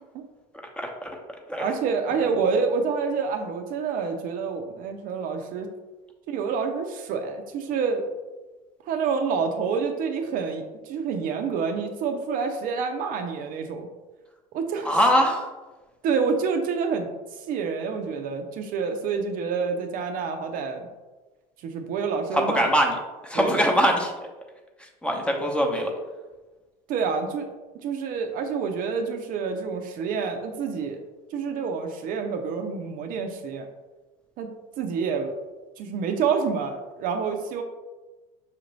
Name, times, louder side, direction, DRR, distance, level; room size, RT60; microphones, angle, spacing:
voice 1, 0.8-1.1 1.5-1.6 14.8-15.5 22.3-22.9 23.2-24.1 25.0-25.9, equal, 5° left, 1 dB, 0.8 m, -22 dB
voice 2, 1.6-5.7 6.3-8.0 8.9-13.9 14.5-15.0 16.0-17.1 17.4-20.9 21.6-22.7 23.3-23.7 25.3-25.5 26.9-27.5 27.8-31.0 31.3-33.7 34.4-34.5 34.8-35.3 35.8-37.6, right 5 dB, 55° right, 5 dB, 0.5 m, -28 dB
5.6 x 2.5 x 3.1 m, 1.2 s
supercardioid pair, 90°, 17 cm